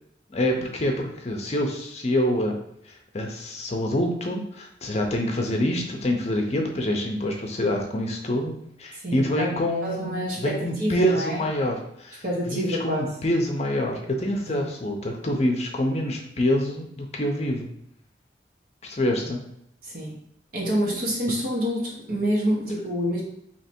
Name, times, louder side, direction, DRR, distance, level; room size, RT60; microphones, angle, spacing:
voice 1, 0.3-2.6 3.1-8.5 8.8-17.7 18.8-19.4, left 1 dB, 35° left, 2 dB, 0.6 m, -26 dB
voice 2, 9.0-9.5 9.8-11.5 12.2-13.1 14.5-14.7 19.8-20.2 20.5-23.2, equal, 55° right, -3 dB, 1.2 m, -27 dB
3.3 x 3.0 x 4.4 m, 0.73 s
head